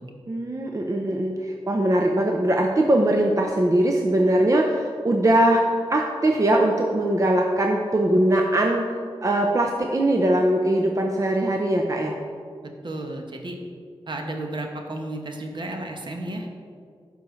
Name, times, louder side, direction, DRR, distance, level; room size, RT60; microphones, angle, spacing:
voice 1, 0.3-8.9 9.2-12.2, right 1 dB, 35° right, 1 dB, 0.6 m, -21 dB
voice 2, 12.6-13.6 14.1-16.6, right 1 dB, 55° right, 3 dB, 1.0 m, -33 dB
11.0 x 5.4 x 3.2 m, 2.2 s
cardioid pair, 60°, 10 cm